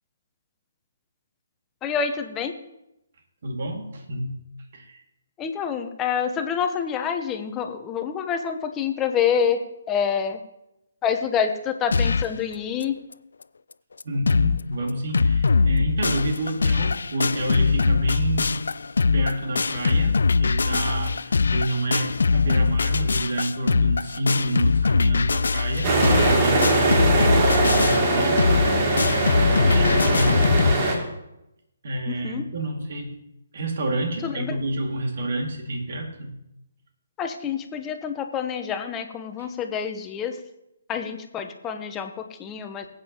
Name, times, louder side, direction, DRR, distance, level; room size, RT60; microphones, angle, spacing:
voice 1, 1.8-2.5 5.4-10.4 11.0-13.0 32.1-32.4 34.2-34.6 37.2-40.4 40.9-42.9, left 7 dB, 15° left, 6 dB, 0.9 m, -27 dB
voice 2, 3.4-4.5 4.7-5.0 14.0-18.6 19.1-28.5 29.4-30.7 31.8-33.2 33.5-36.4 39.4-39.5, right 1 dB, 55° right, 3 dB, 2.2 m, -28 dB
sound 1, 11.9-12.4 12.8-12.9 13.1-13.2 13.7-13.8 14.0-14.6 14.9-30.7, left 4 dB, 65° left, 0.4 m, -22 dB
sound 2, 25.8-30.9, right 2 dB, 35° right, 2.7 m, -21 dB
20.0 x 8.6 x 3.0 m, 0.87 s
figure-of-eight pair, 135°, 0 cm